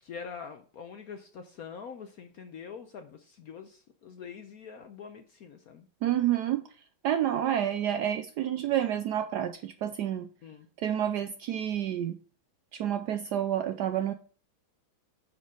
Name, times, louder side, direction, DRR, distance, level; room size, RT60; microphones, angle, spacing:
voice 1, 0.0-5.9 10.4-10.7, left 6 dB, 65° left, 0.9 m, -44 dB
voice 2, 6.0-6.7 7.0-10.3 10.8-12.2 12.7-14.1, right 11 dB, 75° right, 0.9 m, -29 dB
9.2 x 4.4 x 4.9 m
omnidirectional pair, 2.2 m